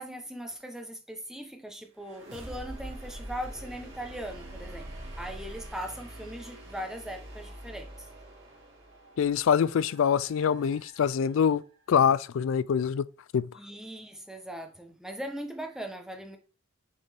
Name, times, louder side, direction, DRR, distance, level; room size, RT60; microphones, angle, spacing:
voice 1, 0.0-4.9 5.2-8.1 13.6-16.4, equal, 5° right, 0.8 m, -39 dB
sound 1, 2.0-11.8, right 1 dB, 55° right, 2.2 m, -45 dB
voice 2, 9.2-11.6 11.9-13.0 13.3-13.5, left 7 dB, 65° left, 0.3 m, -24 dB
7.3 x 4.1 x 3.4 m
head